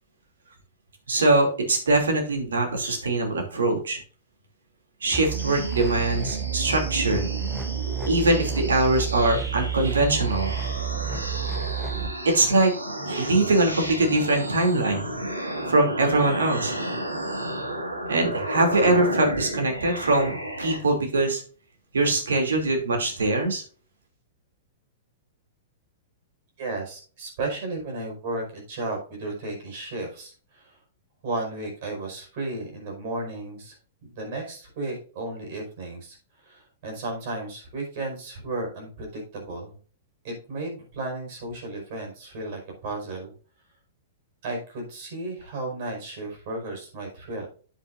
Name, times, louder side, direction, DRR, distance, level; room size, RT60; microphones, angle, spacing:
voice 1, 1.1-4.0 5.0-7.2 8.1-10.6 12.2-12.7 13.1-15.0 15.7-16.7 18.1-20.3 20.6-21.4 21.9-23.6, right 2 dB, 70° right, 3 dB, 2.8 m, -22 dB
sound 1, 5.1-12.1, right 8 dB, 5° right, 0.9 m, -30 dB
sound 2, 5.3-20.8, right 1 dB, 85° right, 1.9 m, -32 dB
voice 2, 26.6-30.8 31.2-33.7 34.0-39.8 40.2-43.3 44.4-47.5, right 2 dB, 45° right, 2 dB, 5.0 m, -34 dB
9.9 x 8.3 x 2.6 m, 0.40 s
figure-of-eight pair, 105°, 0 cm